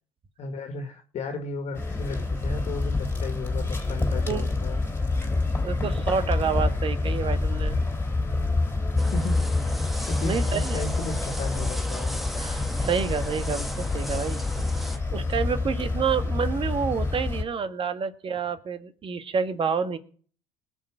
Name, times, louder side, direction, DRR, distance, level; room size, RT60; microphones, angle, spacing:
voice 1, 0.4-4.8 9.1-9.6 10.1-12.2, left 3 dB, 50° left, 6 dB, 2.1 m, -35 dB
sound 1, 1.7-17.4, left 3 dB, 15° left, 3.2 m, -27 dB
voice 2, 5.6-7.8 10.2-10.8 12.4-14.4 15.1-20.0, right 6 dB, 40° right, 10 dB, 1.7 m, -28 dB
sound 2, 9.0-15.0, equal, ahead, 1.6 m, -36 dB
20.0 x 6.6 x 5.0 m, 0.44 s
supercardioid pair, 85°, 14 cm